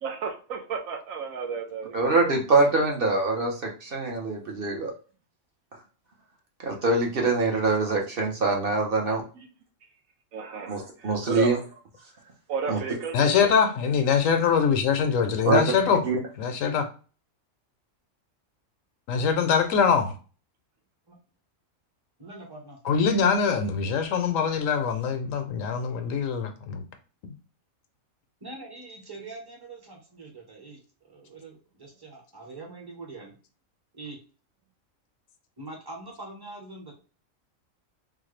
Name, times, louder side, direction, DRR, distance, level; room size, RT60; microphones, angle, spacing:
voice 1, 0.0-2.3 9.4-9.5 10.3-11.5 12.5-13.5, right 5 dB, 80° right, 1.2 m, -33 dB
voice 2, 1.9-4.9 6.6-9.2 10.7-11.6 12.7-12.8 15.4-15.6 16.0-16.2, right 3 dB, 50° right, 0.9 m, -24 dB
voice 3, 13.1-16.0 16.4-16.9 19.1-20.1 22.8-26.8, left 6 dB, 75° left, 1.0 m, -23 dB
voice 4, 22.2-22.8 28.4-33.3 33.9-34.2 35.6-36.9, right 2 dB, 20° right, 0.7 m, -43 dB
3.8 x 2.2 x 3.1 m
omnidirectional pair, 1.4 m